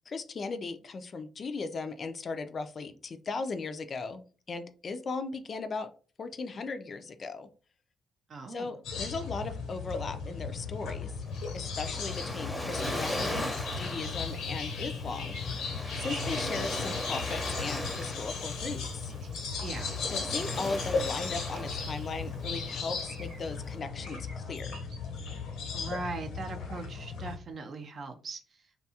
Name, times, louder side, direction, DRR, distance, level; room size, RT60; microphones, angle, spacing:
voice 1, 0.1-5.9 6.2-7.5 8.5-11.1 11.5-15.6 16.0-19.1 20.1-24.8, left 4 dB, 45° left, 9 dB, 0.3 m, -37 dB
voice 2, 8.3-8.8 19.6-19.9 25.7-28.6, right 3 dB, 50° right, 6 dB, 0.5 m, -40 dB
sound 1, 8.8-27.4, left 5 dB, 85° left, 0.6 m, -36 dB
Waves surf, 11.3-23.7, equal, 10° left, 0.6 m, -39 dB
sound 2, 15.3-15.5 15.8-16.5 17.0-17.3 17.6-18.0 19.1-19.6 21.0-22.1 22.4-22.8 23.1-23.6 24.0-24.4 24.7-25.0, right 4 dB, 90° right, 1.0 m, -49 dB
2.7 x 2.3 x 2.8 m, 0.38 s
cardioid pair, 90°, 0 cm